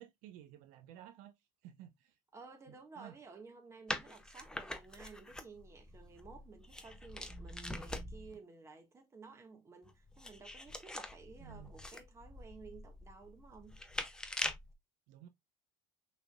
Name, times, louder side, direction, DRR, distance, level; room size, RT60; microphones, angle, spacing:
voice 1, 0.0-2.2 2.7-3.1 11.4-11.8 15.1-15.3, right 11 dB, 65° right, 0.8 m, -54 dB
voice 2, 2.3-13.8, right 4 dB, 20° right, 1.5 m, -54 dB
sound 1, 3.9-8.4 9.8-14.7, left 1 dB, 5° left, 0.7 m, -44 dB
6.0 x 3.6 x 2.3 m
cardioid pair, 135°, 15 cm